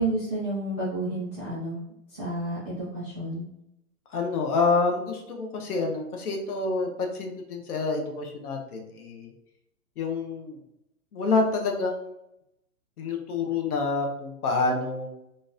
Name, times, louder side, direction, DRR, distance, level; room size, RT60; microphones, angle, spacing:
voice 1, 0.0-1.8 2.1-3.5, right 2 dB, 10° left, -13 dB, 0.5 m, -30 dB
voice 2, 4.1-9.3 10.0-10.6 11.1-12.1 13.0-15.1, left 3 dB, 70° left, 3 dB, 0.9 m, -27 dB
3.8 x 2.5 x 2.5 m, 0.81 s
hypercardioid pair, 170°, 48 cm